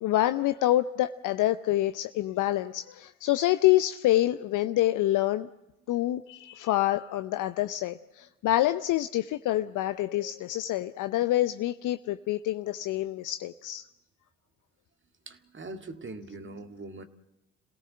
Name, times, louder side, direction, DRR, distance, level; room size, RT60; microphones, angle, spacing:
voice 1, 0.0-5.5 5.9-13.9, left 15 dB, 60° left, 11 dB, 0.7 m, -27 dB
voice 2, 15.3-17.0, right 2 dB, 35° right, 8 dB, 2.0 m, -42 dB
27.5 x 17.0 x 7.7 m, 0.95 s
hypercardioid pair, 50°, 35 cm